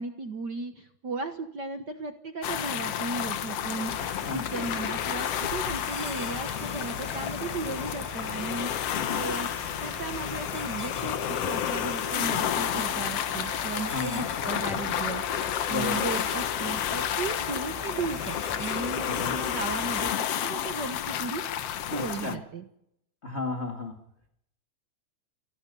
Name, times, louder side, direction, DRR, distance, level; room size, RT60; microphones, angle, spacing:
voice 1, 0.0-9.5 9.8-22.7, right 4 dB, 55° right, 7 dB, 1.2 m, -36 dB
sound 1, 2.4-22.4, left 10 dB, 60° left, 1.8 m, -31 dB
sound 2, 3.8-20.1, left 2 dB, 10° left, 2.9 m, -41 dB
voice 2, 13.9-14.3 15.7-16.1 18.9-19.4 21.9-22.4 23.2-24.0, left 4 dB, 25° left, 4 dB, 1.9 m, -34 dB
28.5 x 19.0 x 5.5 m, 0.75 s
omnidirectional pair, 3.6 m